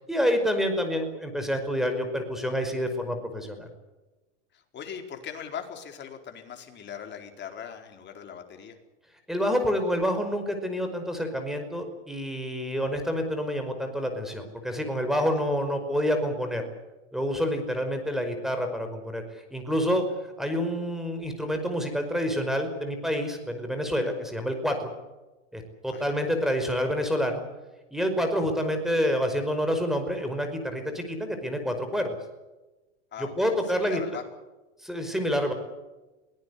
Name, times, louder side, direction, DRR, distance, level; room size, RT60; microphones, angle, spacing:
voice 1, 0.1-3.7 9.3-16.6 17.1-20.0 20.4-24.9 25.5-27.4 27.9-32.1 33.2-34.0 34.8-35.5, equal, ahead, 6 dB, 5.3 m, -28 dB
voice 2, 4.5-8.8 15.4-15.5 25.9-26.1 33.1-34.2, left 8 dB, 30° left, 5 dB, 4.3 m, -40 dB
23.5 x 18.5 x 8.4 m, 1.1 s
hypercardioid pair, 120°, 36 cm